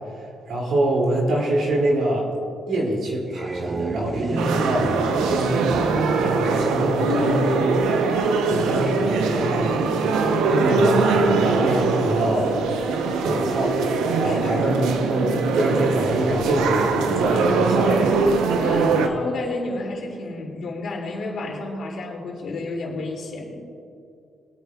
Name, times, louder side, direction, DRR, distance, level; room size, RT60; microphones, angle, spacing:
voice 1, 0.5-2.3 2.7-4.9 5.3-7.8 8.5-9.8 10.5-12.5 13.2-13.7 14.2-18.1 18.9-19.0, right 1 dB, 70° right, -2 dB, 2.7 m, -24 dB
sound 1, 3.1-7.3, right 3 dB, 25° right, 0.5 m, -31 dB
sound 2, 4.4-19.1, right 4 dB, 90° right, 0.8 m, -22 dB
voice 2, 8.4-8.9 14.2-14.7 18.6-23.6, left 2 dB, 60° left, -1 dB, 2.7 m, -31 dB
22.5 x 9.0 x 2.4 m, 2.6 s
cardioid pair, 90°, 0 cm